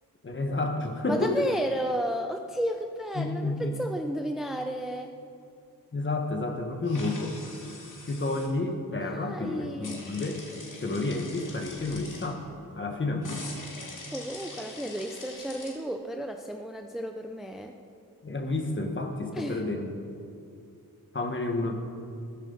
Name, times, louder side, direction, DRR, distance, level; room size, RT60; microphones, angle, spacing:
voice 1, 0.2-1.5 3.1-3.7 5.9-7.4 8.0-10.4 10.8-13.5 18.2-20.0 21.1-21.8, left 2 dB, 35° left, 4 dB, 1.5 m, -30 dB
voice 2, 1.1-5.1 9.0-10.0 14.1-17.8 19.3-19.8, right 1 dB, ahead, 4 dB, 0.5 m, -33 dB
sound 1, 6.8-8.5 9.8-12.3 13.2-15.7, left 3 dB, 60° left, 2.3 m, -44 dB
15.0 x 14.0 x 4.0 m, 2.5 s
wide cardioid pair, 115°, 36 cm